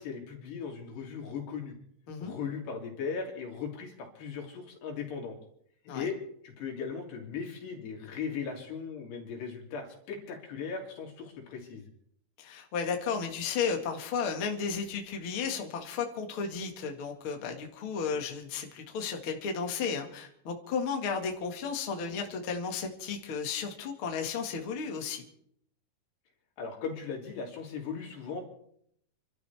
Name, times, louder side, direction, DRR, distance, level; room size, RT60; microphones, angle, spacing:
voice 1, 0.0-1.7 2.2-5.4 5.9-6.2 6.4-11.8 26.6-28.5, left 5 dB, 85° left, 1 dB, 5.1 m, -38 dB
voice 2, 12.4-25.2, left 6 dB, 40° left, 3 dB, 2.1 m, -33 dB
29.5 x 12.5 x 3.5 m, 0.68 s
omnidirectional pair, 4.7 m